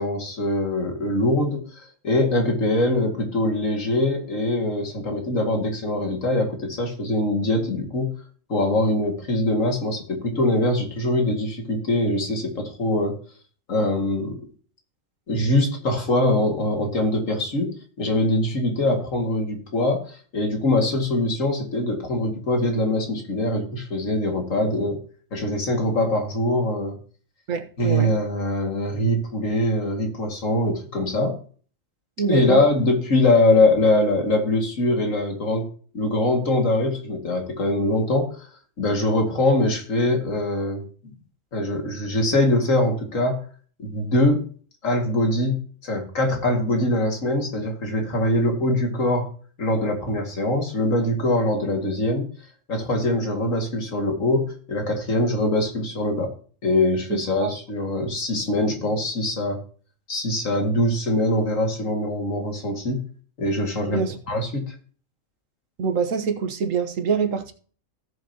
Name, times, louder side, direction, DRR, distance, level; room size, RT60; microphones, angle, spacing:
voice 1, 0.0-1.6 2.0-8.1 8.5-13.2 13.7-14.5 15.3-25.0 25.3-27.0 27.8-31.4 32.2-35.7 35.9-38.5 38.8-40.9 41.5-43.4 43.8-44.5 44.8-49.3 49.6-52.3 52.7-56.3 56.6-59.6 60.1-63.0 63.4-64.0 64.3-64.7, left 1 dB, 85° left, 2.5 m, -23 dB
voice 2, 27.5-28.1 32.2-32.6 57.1-57.5 63.9-64.2 65.8-67.5, right 6 dB, 85° right, 1.5 m, -25 dB
16.5 x 7.1 x 2.9 m
omnidirectional pair, 1.3 m